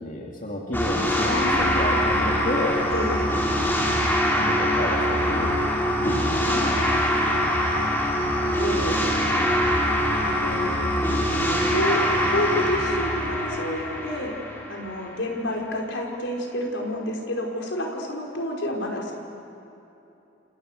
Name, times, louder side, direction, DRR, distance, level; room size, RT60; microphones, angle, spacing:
voice 1, 0.0-2.9 4.3-5.6 6.0-6.8 7.3-7.5, left 1 dB, 45° left, -1 dB, 2.6 m, -31 dB
sound 1, 0.7-15.1, equal, 10° left, 3.5 m, -23 dB
voice 2, 1.2-2.1 2.9-3.3 6.4-6.7 8.6-9.5 10.1-11.0 11.3-12.0 12.3-14.4 14.7-19.2, left 1 dB, 75° left, 0 dB, 5.0 m, -29 dB
29.5 x 29.0 x 6.7 m, 2.9 s
head